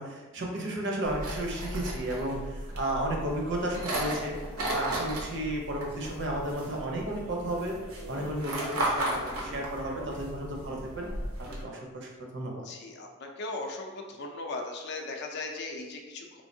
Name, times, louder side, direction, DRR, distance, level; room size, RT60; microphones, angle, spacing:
voice 1, 0.0-4.3 4.7-7.8 8.1-11.1 11.6-12.6, right 1 dB, 55° right, 0 dB, 0.7 m, -33 dB
sound 1, 1.0-11.6, right 1 dB, 85° right, 0.8 m, -35 dB
voice 2, 12.6-16.4, left 2 dB, 50° left, 2 dB, 0.4 m, -38 dB
3.5 x 3.2 x 2.6 m, 1.2 s
head